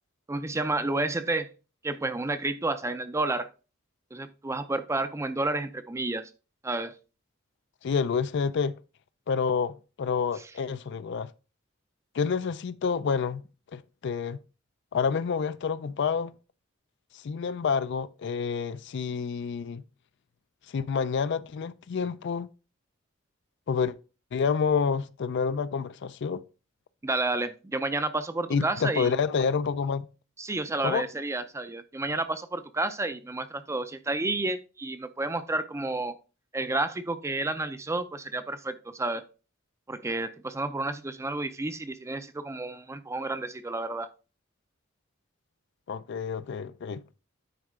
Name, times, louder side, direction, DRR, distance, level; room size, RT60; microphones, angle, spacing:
voice 1, 0.3-1.5 1.8-3.5 4.1-6.3 6.6-6.9 27.0-29.1 30.4-36.1 36.5-39.2 39.9-44.1, right 2 dB, 15° right, 0.4 m, -30 dB
voice 2, 7.8-8.8 9.3-11.3 12.1-13.4 13.7-14.4 14.9-16.4 17.1-19.8 20.7-22.5 23.7-23.9 24.3-26.4 28.5-30.1 30.8-31.0 45.9-47.0, left 6 dB, 55° left, 0.4 m, -28 dB
9.4 x 4.6 x 3.6 m
head